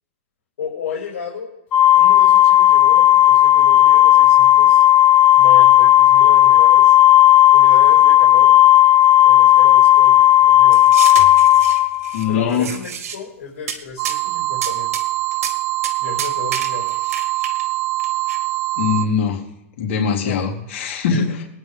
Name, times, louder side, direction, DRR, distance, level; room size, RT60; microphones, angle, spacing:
voice 1, 0.6-1.5 1.9-4.8 5.4-6.9 7.5-8.6 9.2-10.9 12.3-14.9 16.0-17.1 20.2-20.4 21.1-21.4, left 5 dB, 90° left, -3 dB, 5.5 m, -33 dB
Organ, 1.7-12.5, left 12 dB, 20° left, 0.7 m, -12 dB
sound 1, 10.7-12.3 12.5-13.2 13.7-13.8 14.0-14.2 14.6-15.0 15.3-15.6 15.8-17.6 18.0-18.4, right 7 dB, 90° right, 2.1 m, -29 dB
voice 2, 12.1-12.7 18.8-19.4 19.8-21.3, left 6 dB, 60° left, -1 dB, 3.9 m, -21 dB
sound 2, 14.0-19.1, right 17 dB, 30° right, 0.4 m, -23 dB
24.0 x 9.7 x 3.7 m, 0.91 s
supercardioid pair, 165°, 8 cm